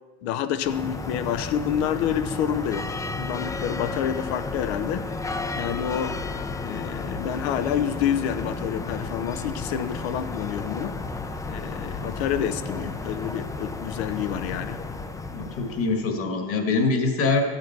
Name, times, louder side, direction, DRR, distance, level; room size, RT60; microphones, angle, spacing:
voice 1, 0.2-5.1 5.6-6.2 6.6-11.1 11.5-14.8, left 9 dB, 75° left, 11 dB, 0.9 m, -28 dB
sound 1, 0.6-16.1, left 3 dB, 10° left, 0.5 m, -33 dB
voice 2, 15.3-17.4, left 4 dB, 40° left, 4 dB, 1.9 m, -24 dB
13.0 x 8.7 x 4.7 m, 1.5 s
supercardioid pair, 120°, 33 cm